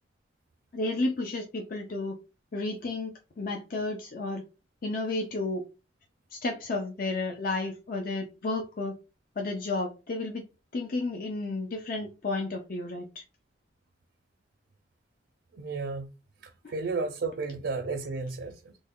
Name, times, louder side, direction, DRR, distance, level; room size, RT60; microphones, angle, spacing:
voice 1, 0.7-2.2 2.5-4.4 4.8-5.6 6.3-8.9 9.4-10.4 10.7-13.2 16.6-16.7, left 2 dB, 50° left, 0.5 m, -32 dB
voice 2, 15.5-16.1 16.4-18.8, right 4 dB, 65° right, 0.4 m, -33 dB
3.2 x 2.1 x 3.6 m
head